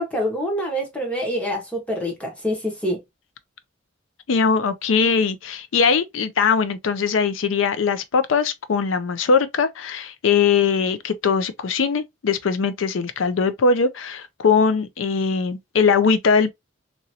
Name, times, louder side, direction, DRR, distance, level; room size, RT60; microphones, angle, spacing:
voice 1, 0.0-3.0, equal, 5° left, 1.2 m, -26 dB
voice 2, 4.3-16.5, left 5 dB, 70° left, 0.5 m, -20 dB
3.0 x 2.6 x 2.7 m
head